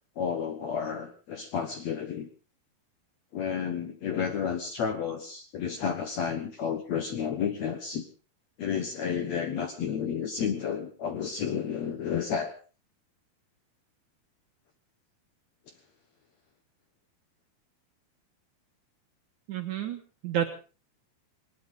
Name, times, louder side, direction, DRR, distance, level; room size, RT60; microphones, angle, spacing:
voice 1, 0.2-2.3 3.3-8.1 8.6-12.5, left 7 dB, 65° left, 7 dB, 1.8 m, -31 dB
voice 2, 19.5-20.5, right 10 dB, 65° right, 5 dB, 2.1 m, -30 dB
19.5 x 19.5 x 3.8 m, 0.35 s
omnidirectional pair, 4.6 m